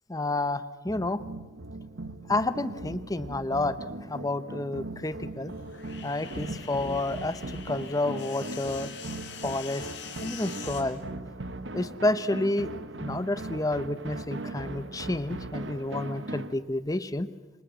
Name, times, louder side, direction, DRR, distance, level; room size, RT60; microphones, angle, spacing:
voice 1, 0.1-1.2 2.3-3.8 4.1-5.5 6.0-7.4 7.7-8.9 9.4-9.9 10.2-11.0 11.7-12.7 13.0-17.3, left 2 dB, 20° left, 14 dB, 0.8 m, -30 dB
sound 1, 0.9-16.5, right 2 dB, 85° right, 1.3 m, -39 dB
sound 2, 5.0-10.8, left 7 dB, 70° left, 4.3 m, -44 dB
26.5 x 24.0 x 8.1 m, 1.2 s
head